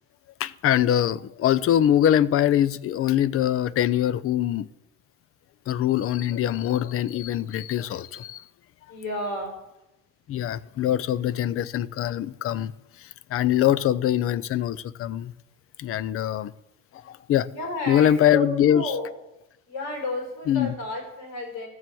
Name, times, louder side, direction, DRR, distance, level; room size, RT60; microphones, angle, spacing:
voice 1, 0.4-4.7 5.7-8.4 10.3-12.7 13.3-15.3 15.8-16.5 17.0-17.5 17.9-18.9 20.5-20.7, left 11 dB, 45° left, 0.5 m, -23 dB
voice 2, 8.9-9.6 17.4-19.1 19.7-21.7, left 2 dB, 85° left, 5.6 m, -31 dB
14.0 x 7.3 x 7.8 m
cardioid pair, 130°, 31 cm